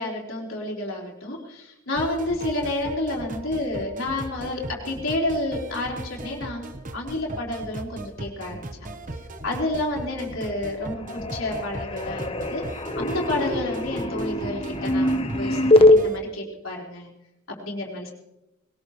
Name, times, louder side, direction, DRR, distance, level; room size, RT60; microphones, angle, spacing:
voice 1, 0.0-6.6 6.9-8.7 9.4-12.7 13.0-17.1 17.5-18.1, left 1 dB, 75° left, -2 dB, 4.2 m, -30 dB
sound 1, 2.0-16.2, right 2 dB, 40° right, 1.2 m, -38 dB
sound 2, 10.0-10.6 10.8-16.0, left 1 dB, 25° left, 1.1 m, -22 dB
21.0 x 19.0 x 3.2 m, 0.95 s
head